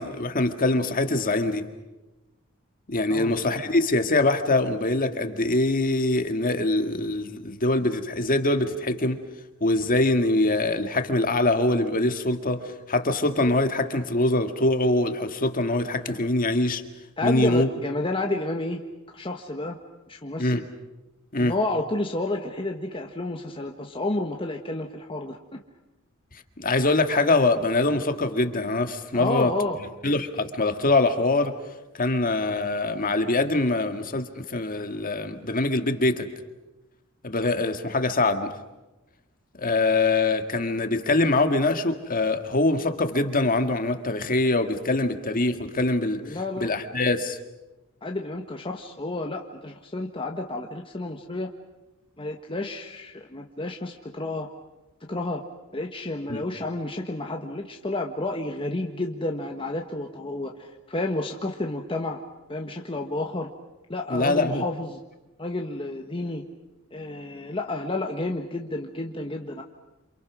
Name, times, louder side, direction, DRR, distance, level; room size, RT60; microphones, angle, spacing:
voice 1, 0.0-1.7 2.9-9.2 9.6-16.8 17.2-17.7 20.4-20.6 21.3-21.6 26.6-29.5 30.0-31.5 32.0-36.3 37.2-38.5 39.6-47.4 56.3-56.4 64.1-64.6, left 2 dB, 40° left, 7 dB, 1.8 m, -23 dB
voice 2, 17.2-18.8 19.1-19.8 20.1-20.6 21.4-25.6 29.1-29.8 46.2-46.7 48.0-51.5 52.2-54.5 55.1-55.4 55.7-62.2 62.5-63.5 63.9-65.0 65.4-66.4 66.9-69.6, left 2 dB, 25° left, 2 dB, 1.4 m, -30 dB
28.5 x 27.5 x 6.2 m, 1.0 s
head